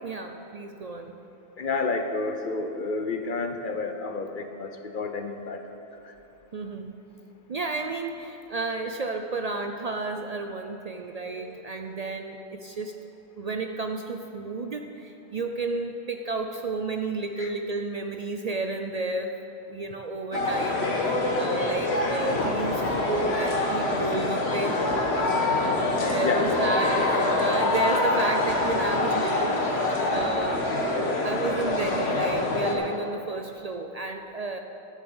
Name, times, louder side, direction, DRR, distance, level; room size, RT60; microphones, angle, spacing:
voice 1, 0.0-1.1 6.5-6.9 7.5-12.9 13.4-19.3 19.7-24.8 25.9-29.7 30.1-30.9 31.2-34.6, right 3 dB, 50° right, 5 dB, 0.5 m, -32 dB
voice 2, 1.6-5.6 6.0-6.1 11.1-11.9 17.4-17.5 26.0-26.5, left 3 dB, 55° left, 6 dB, 0.9 m, -31 dB
sound 1, 20.3-32.7, left 2 dB, 90° left, 1.6 m, -25 dB
12.5 x 7.3 x 7.1 m, 2.9 s
omnidirectional pair, 1.1 m